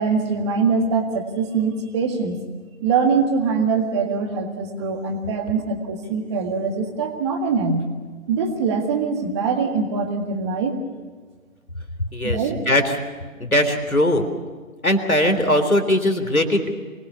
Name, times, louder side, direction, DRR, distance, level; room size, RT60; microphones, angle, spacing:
voice 1, 0.0-2.4 2.8-7.9 8.3-10.7 12.2-12.6, right 5 dB, 20° right, 5 dB, 1.8 m, -23 dB
voice 2, 12.1-12.9 13.4-14.2 14.8-16.7, left 1 dB, 90° left, 7 dB, 3.7 m, -20 dB
24.5 x 20.0 x 6.9 m, 1.5 s
figure-of-eight pair, 145°, 41 cm